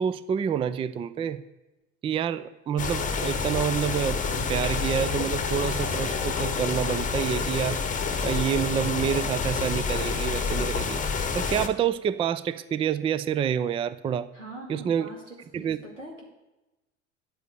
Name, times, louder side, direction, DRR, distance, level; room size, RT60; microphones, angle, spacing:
voice 1, 0.0-1.4 2.0-7.8 8.2-11.0 11.3-14.3 14.7-15.1 15.5-15.8, right 8 dB, 15° right, 15 dB, 0.4 m, -28 dB
sound 1, 2.8-11.7, left 5 dB, 20° left, 1.0 m, -28 dB
voice 2, 14.3-16.2, right 1 dB, 90° right, -2 dB, 2.6 m, -43 dB
9.6 x 8.2 x 6.8 m, 1.0 s
figure-of-eight pair, 70°, 36 cm